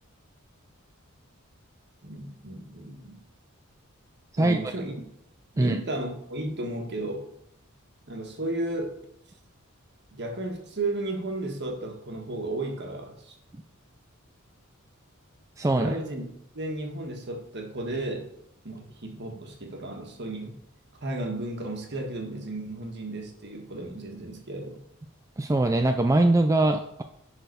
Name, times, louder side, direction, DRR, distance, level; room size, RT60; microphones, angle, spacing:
voice 1, 2.0-3.2 4.4-4.9 5.5-7.3 8.1-9.0 10.1-13.4 15.7-16.2 16.5-18.3 18.6-20.6 20.9-24.8, right 2 dB, 55° right, 3 dB, 1.6 m, -34 dB
voice 2, 15.6-15.9 25.4-27.0, right 2 dB, 15° right, 5 dB, 0.4 m, -22 dB
10.5 x 4.1 x 5.3 m, 0.74 s
head